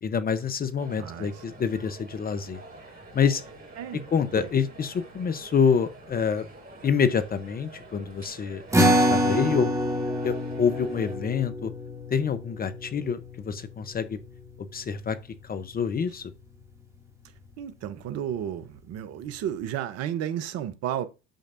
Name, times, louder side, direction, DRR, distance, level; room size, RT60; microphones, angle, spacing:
voice 1, 0.0-2.6 3.1-3.4 4.1-6.4 6.8-9.7 10.2-11.7 12.1-14.2 14.7-15.2 15.5-16.3, left 6 dB, 30° left, 0.8 m, -27 dB
sound 1, 0.8-11.2, right 2 dB, 30° right, 5.0 m, -47 dB
voice 2, 1.0-1.3 3.8-4.1 4.3-4.5 17.6-21.1, right 10 dB, 50° right, 0.9 m, -32 dB
sound 2, 8.7-15.4, equal, 10° right, 2.3 m, -27 dB
9.0 x 6.6 x 2.6 m
hypercardioid pair, 75°, 31 cm